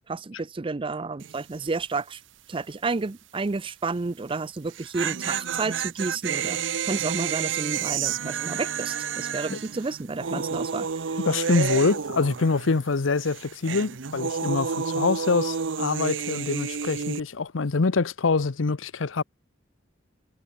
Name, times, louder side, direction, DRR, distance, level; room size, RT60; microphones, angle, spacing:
voice 1, 0.1-2.2 2.5-11.2, right 3 dB, 25° right, 0.5 m, -31 dB
sound 1, 1.2-1.6 1.8-1.9 4.6-12.9 13.2-17.2, right 7 dB, 70° right, 0.7 m, -30 dB
voice 2, 11.2-19.2, left 4 dB, 85° left, 0.8 m, -25 dB
head